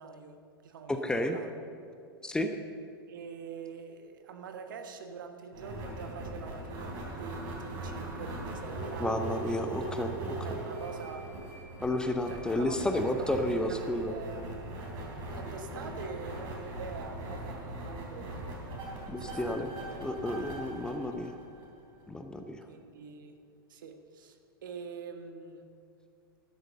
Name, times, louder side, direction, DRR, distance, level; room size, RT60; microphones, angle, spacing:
voice 1, 0.0-1.7 3.1-9.4 10.4-11.3 11.6-11.7 12.3-14.5 15.3-20.1 21.1-21.2 22.7-23.4 23.7-25.7, right 5 dB, 60° right, 7 dB, 1.2 m, -45 dB
voice 2, 0.9-1.4 2.2-2.5 9.0-10.4 11.8-14.1 19.1-19.7 20.0-21.4 22.1-22.7, left 1 dB, 5° left, 6 dB, 0.7 m, -31 dB
sound 1, 5.5-22.0, right 2 dB, 40° right, 3.3 m, -40 dB
12.0 x 7.9 x 6.7 m, 2.4 s
figure-of-eight pair, 95°, 12 cm